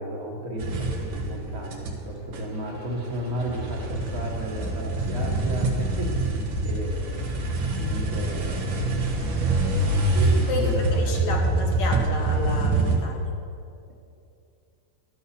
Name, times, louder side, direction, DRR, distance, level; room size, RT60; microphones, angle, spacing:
voice 1, 0.0-9.0 10.1-11.3, right 1 dB, 55° right, -1 dB, 1.5 m, -33 dB
sound 1, 0.6-2.1 2.3-13.0, right 2 dB, 85° right, 1.8 m, -25 dB
voice 2, 10.5-13.4, left 3 dB, 75° left, 1 dB, 1.7 m, -30 dB
12.0 x 6.9 x 4.2 m, 2.5 s
omnidirectional pair, 2.0 m